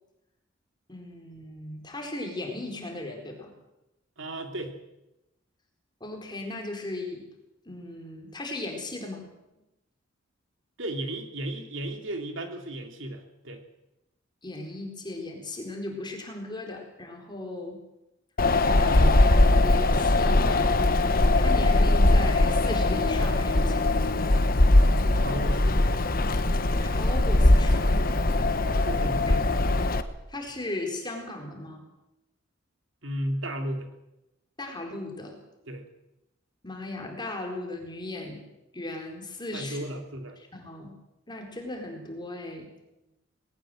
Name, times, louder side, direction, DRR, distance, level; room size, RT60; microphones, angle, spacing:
voice 1, 0.9-3.5 6.0-7.3 7.7-9.3 14.4-17.8 18.7-20.8 21.4-23.9 26.8-28.0 30.3-31.8 34.6-35.4 36.6-38.4 38.7-39.8 40.5-40.9 41.3-42.7, left 2 dB, 25° left, 2 dB, 4.2 m, -37 dB
voice 2, 4.2-4.7 10.8-13.6 24.8-26.0 28.4-29.7 33.0-33.9 35.7-35.9 39.5-40.4, right 1 dB, 80° right, 4 dB, 3.0 m, -35 dB
Wind, 18.4-30.0, left 2 dB, 50° left, 1.2 m, -21 dB
20.0 x 18.0 x 7.7 m, 0.93 s
head